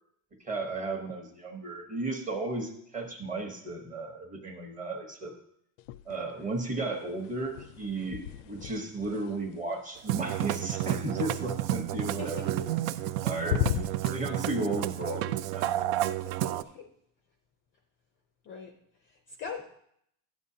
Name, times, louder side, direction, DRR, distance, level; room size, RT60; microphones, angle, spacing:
voice 1, 0.4-5.3 6.1-12.7 13.0-13.6 14.1-15.7, right 2 dB, 15° right, 3 dB, 0.9 m, -34 dB
sound 1, 5.8-6.5 6.8-10.9 12.5-13.1 13.4-14.2, left 14 dB, 80° left, 0.5 m, -36 dB
Musical instrument, 10.0-16.6, right 13 dB, 70° right, 0.6 m, -31 dB
voice 2, 12.2-12.5 16.2-16.9 18.4-18.7 19.0-19.6, left 5 dB, 25° left, 3 dB, 0.4 m, -42 dB
12.0 x 9.0 x 2.7 m, 0.70 s
cardioid pair, 175°, 46 cm